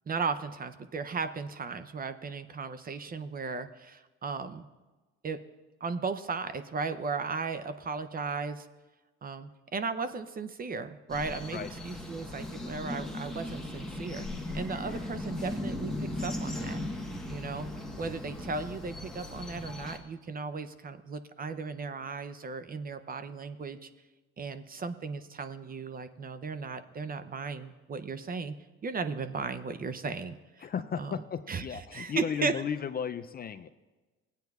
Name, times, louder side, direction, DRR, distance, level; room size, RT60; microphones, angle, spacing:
voice 1, 0.1-4.7 5.2-5.4 5.8-8.7 9.2-14.3 14.5-16.8 17.3-17.7 18.0-23.9 24.4-28.6 28.8-30.7 31.0-31.2 31.5-32.5, right 4 dB, 30° right, 11 dB, 0.6 m, -36 dB
sound 1, 11.1-20.0, left 1 dB, ahead, 1.2 m, -37 dB
voice 2, 30.6-33.7, left 7 dB, 30° left, 10 dB, 0.4 m, -35 dB
16.5 x 9.1 x 2.4 m, 1.2 s
supercardioid pair, 90°, 30 cm